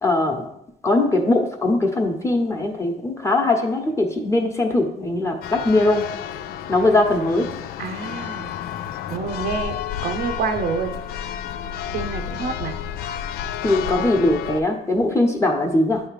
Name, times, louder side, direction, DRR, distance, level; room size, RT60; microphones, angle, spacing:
voice 1, 0.0-0.5 0.8-6.0 6.7-7.5 13.6-16.0, left 2 dB, 15° left, 2 dB, 1.2 m, -20 dB
Church bell, 5.4-14.6, left 9 dB, 65° left, 0.4 m, -31 dB
voice 2, 7.8-8.5 9.1-9.8 10.0-10.9 11.9-12.8, right 5 dB, 65° right, 7 dB, 0.7 m, -27 dB
9.2 x 3.2 x 4.9 m, 0.78 s
cardioid pair, 110°, 17 cm